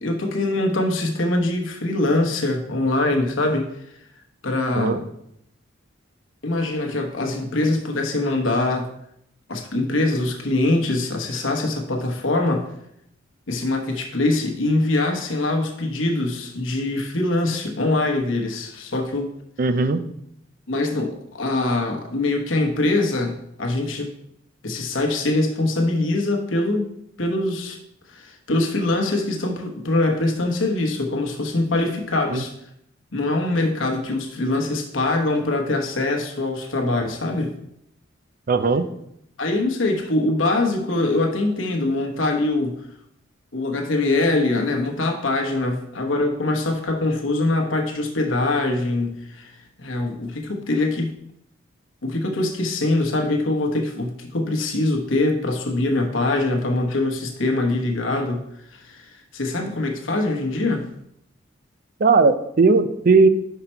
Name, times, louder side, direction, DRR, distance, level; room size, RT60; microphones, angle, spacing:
voice 1, 0.0-3.7 4.4-5.0 6.4-8.9 9.5-12.7 13.5-19.3 20.7-24.1 24.6-26.9 27.2-27.8 28.1-32.5 33.1-37.5 39.4-42.8 43.5-49.5 49.8-51.2 52.0-58.4 58.7-60.9, left 2 dB, 85° left, 3 dB, 1.1 m, -23 dB
voice 2, 19.6-20.0 32.3-32.4 38.5-38.9 62.0-63.3, right 4 dB, 45° right, 11 dB, 0.5 m, -17 dB
5.8 x 5.6 x 4.4 m, 0.75 s
head